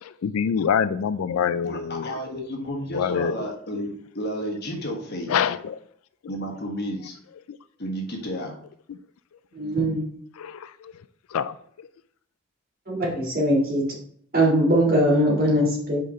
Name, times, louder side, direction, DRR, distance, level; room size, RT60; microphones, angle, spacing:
voice 1, 0.0-2.2 2.9-3.5 5.3-5.8 7.5-7.6 8.9-9.0 10.4-10.9 11.3-11.9, left 7 dB, 80° left, 0.3 m, -26 dB
voice 2, 1.6-5.3 6.3-7.1 7.8-8.5, equal, 45° left, 1.4 m, -31 dB
voice 3, 9.5-10.0 12.9-13.8 14.3-16.0, equal, 40° right, 2.1 m, -21 dB
5.7 x 4.9 x 4.2 m
head